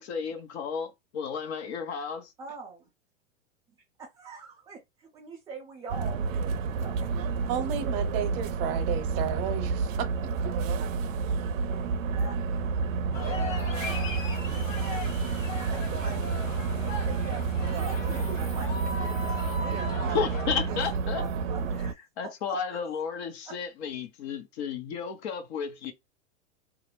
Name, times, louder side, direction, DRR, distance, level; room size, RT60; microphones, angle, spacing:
voice 1, 0.0-2.3 20.1-21.3 21.8-21.9 22.2-25.9, left 6 dB, 55° left, 0.8 m, -33 dB
voice 2, 2.4-2.9 4.0-7.1 10.8-10.9 12.1-12.4 13.2-14.1 14.3-15.3 15.7-16.4 17.6-21.7 22.2-22.8, right 4 dB, 10° right, 0.3 m, -44 dB
sound 1, 5.9-21.9, right 5 dB, 75° right, 0.5 m, -30 dB
voice 3, 7.5-10.1, right 9 dB, 45° right, 0.8 m, -32 dB
sound 2, 13.1-20.5, left 3 dB, 75° left, 1.1 m, -38 dB
2.4 x 2.0 x 3.0 m
hypercardioid pair, 115°, 39 cm